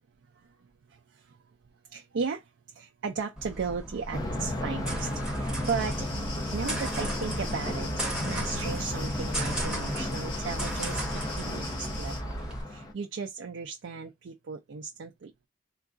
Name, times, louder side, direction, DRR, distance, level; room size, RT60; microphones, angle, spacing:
voice 1, 1.9-2.4 2.8-6.1 6.5-7.9 8.2-12.2 12.7-15.3, right 5 dB, 80° right, 0.4 m, -35 dB
sound 1, 3.4-12.6, right 1 dB, 5° right, 1.2 m, -36 dB
Thunder, 4.1-12.9, left 1 dB, 20° left, 0.8 m, -33 dB
sound 2, 5.6-12.2, left 3 dB, 75° left, 1.3 m, -43 dB
3.7 x 2.3 x 2.5 m
head